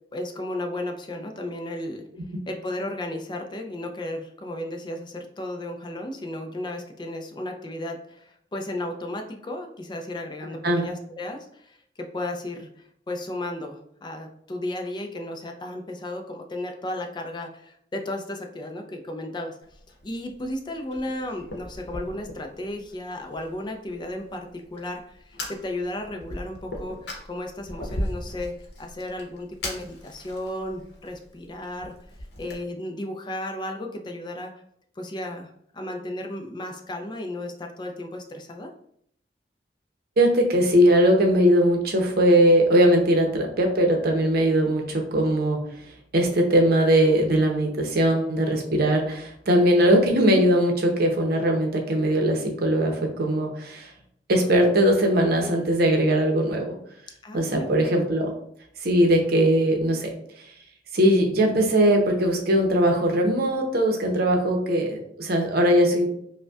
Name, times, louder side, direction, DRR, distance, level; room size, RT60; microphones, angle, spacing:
voice 1, 0.1-2.1 2.5-12.7 13.1-31.9 32.4-34.5 35.0-38.7 44.6-44.7 57.2-57.7, left 1 dB, 25° left, 4 dB, 0.4 m, -34 dB
Fire, 19.6-32.6, left 1 dB, 70° left, 0.8 m, -39 dB
voice 2, 40.2-45.6 46.1-53.9 54.3-56.8 57.3-58.3 58.8-60.1 60.9-66.1, equal, 60° right, 3 dB, 0.7 m, -20 dB
5.0 x 2.2 x 2.3 m, 0.69 s
head